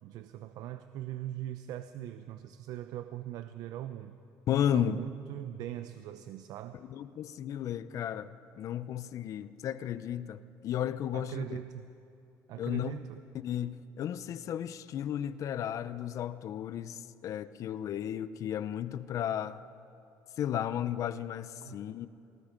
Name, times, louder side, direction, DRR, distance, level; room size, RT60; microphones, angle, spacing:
voice 1, 0.0-4.1 4.7-6.8 11.1-11.8 12.5-13.3 21.6-21.8, right 12 dB, 70° right, 10 dB, 0.7 m, -41 dB
voice 2, 4.5-5.0 6.8-11.6 12.6-13.0 13.3-19.6 20.4-22.1, left 10 dB, 55° left, 14 dB, 0.7 m, -34 dB
27.5 x 19.0 x 5.3 m, 2.6 s
cardioid pair, 125°, 7 cm